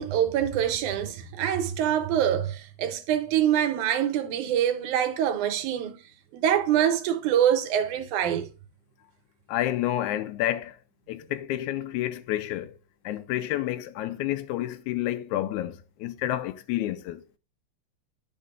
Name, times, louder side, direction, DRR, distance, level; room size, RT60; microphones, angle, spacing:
voice 1, 0.0-6.0 6.3-8.5, right 10 dB, 85° right, 2.2 m, -25 dB
voice 2, 9.5-10.8 11.1-12.8 13.0-17.2, left 13 dB, 80° left, 2.0 m, -29 dB
11.0 x 5.2 x 2.4 m
omnidirectional pair, 3.5 m